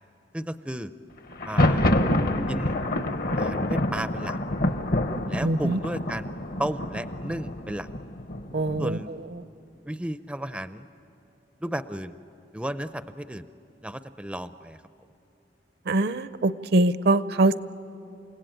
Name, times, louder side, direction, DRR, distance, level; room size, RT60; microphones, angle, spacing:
voice 1, 0.3-0.9 1.5-1.8 2.5-2.8 3.4-4.4 5.3-6.3 6.6-7.9 8.8-9.1 9.8-10.9 11.6-12.2 12.5-13.4 13.8-14.8, right 1 dB, 5° right, 12 dB, 0.5 m, -33 dB
Thunder, 1.3-9.1, left 1 dB, 55° left, 1.0 m, -27 dB
voice 2, 5.4-5.8 8.5-9.0 15.9-17.6, right 2 dB, 65° right, 14 dB, 0.6 m, -23 dB
29.5 x 16.5 x 9.1 m, 2.9 s
head